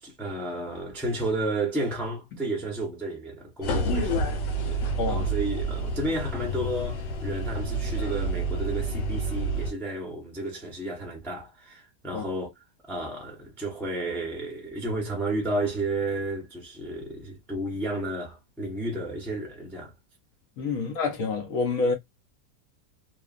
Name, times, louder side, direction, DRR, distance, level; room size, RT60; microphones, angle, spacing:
voice 1, 0.0-4.3 4.7-12.5 12.9-19.9 20.7-20.9, right 1 dB, ahead, 0.4 m, -32 dB
sound 1, 3.6-9.7, right 2 dB, 85° left, 1.4 m, -29 dB
voice 2, 20.6-22.0, left 4 dB, 60° left, 0.9 m, -27 dB
2.8 x 2.5 x 2.4 m
omnidirectional pair, 1.9 m